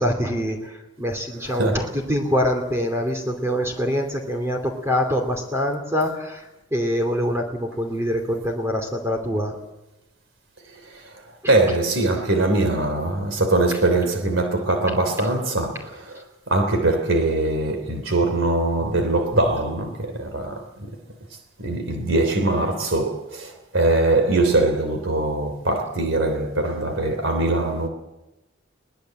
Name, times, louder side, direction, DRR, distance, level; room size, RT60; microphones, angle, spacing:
voice 1, 0.0-9.6 11.4-11.6, equal, 15° right, 2.7 m, -25 dB
voice 2, 1.4-1.9 10.7-11.2 11.5-20.9 21.6-27.9, right 2 dB, 75° right, 3.2 m, -22 dB
22.5 x 19.5 x 7.7 m
head